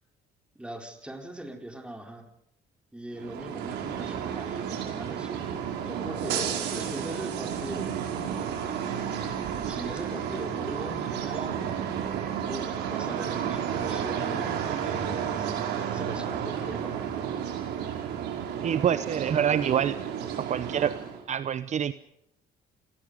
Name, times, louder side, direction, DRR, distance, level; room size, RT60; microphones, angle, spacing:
voice 1, 0.5-2.3 2.9-7.9 8.8-12.0 12.5-15.5 15.9-17.4, right 1 dB, 5° right, 4 dB, 4.2 m, -40 dB
sound 1, 3.1-21.2, right 8 dB, 85° right, 5.3 m, -32 dB
voice 2, 18.6-20.0 20.4-21.0 21.3-21.9, right 9 dB, 45° right, 14 dB, 0.8 m, -26 dB
27.5 x 20.0 x 5.1 m, 0.78 s
cardioid pair, 110°, 17 cm